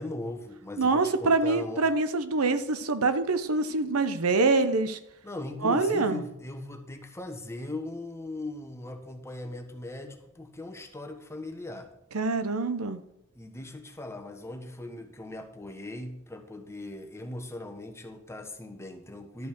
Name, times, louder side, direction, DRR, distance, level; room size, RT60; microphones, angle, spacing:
voice 1, 0.0-1.9 5.2-11.9 13.3-19.5, left 2 dB, 15° left, 4 dB, 1.3 m, -39 dB
voice 2, 0.8-5.0 5.6-6.2 12.1-13.0, right 3 dB, 90° right, 11 dB, 0.9 m, -25 dB
12.5 x 5.4 x 6.6 m, 0.80 s
head